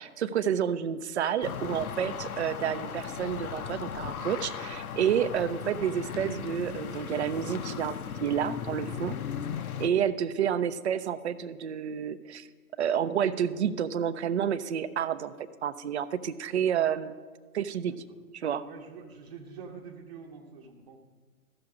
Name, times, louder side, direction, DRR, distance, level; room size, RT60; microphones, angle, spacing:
voice 1, 0.0-7.9 8.2-9.2 9.8-12.5 12.8-15.3 15.6-17.2 17.5-17.9 18.3-18.7, right 8 dB, 50° right, 13 dB, 0.5 m, -29 dB
sound 1, 1.4-9.9, left 7 dB, 75° left, 0.7 m, -37 dB
voice 2, 9.8-10.2 17.9-18.0 18.6-21.0, right 5 dB, 30° right, -2 dB, 1.0 m, -46 dB
14.5 x 6.4 x 4.8 m, 1.4 s
hypercardioid pair, 145°, 44 cm